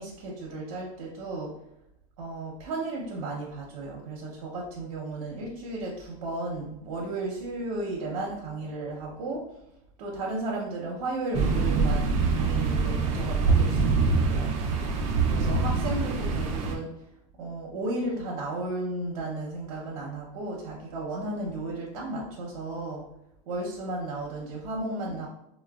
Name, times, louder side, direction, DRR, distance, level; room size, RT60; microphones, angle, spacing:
voice 1, 0.0-1.5 2.2-9.6 10.0-14.5 15.3-17.0 17.4-23.1 23.5-25.3, right 2 dB, 75° right, -3 dB, 0.7 m, -34 dB
sound 1, 11.3-16.8, right 4 dB, 40° right, 0.4 m, -24 dB
3.8 x 2.1 x 2.3 m, 0.81 s
supercardioid pair, 150°, 18 cm